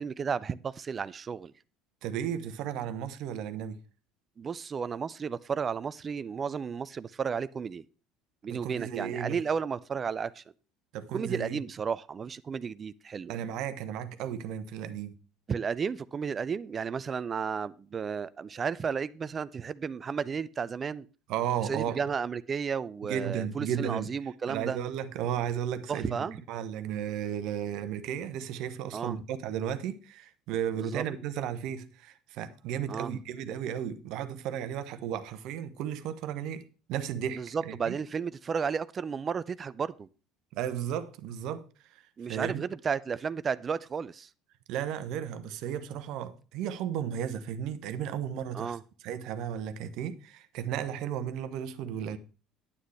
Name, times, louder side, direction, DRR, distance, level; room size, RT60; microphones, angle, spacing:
voice 1, 0.0-1.5 4.4-7.8 8.4-10.4 11.1-13.4 15.5-21.1 21.6-24.8 25.9-26.4 28.9-29.2 30.8-31.0 32.9-33.1 37.4-40.1 42.2-44.3 48.5-48.8, right 6 dB, 30° right, 0.4 m, -33 dB
voice 2, 2.0-3.8 8.5-9.4 10.9-11.6 13.3-15.2 21.3-22.0 23.1-24.1 24.5-38.0 40.5-42.0 42.3-42.6 44.7-48.8 49.0-52.2, right 9 dB, 55° right, 0.9 m, -34 dB
9.7 x 9.4 x 3.3 m
figure-of-eight pair, 65°, 0 cm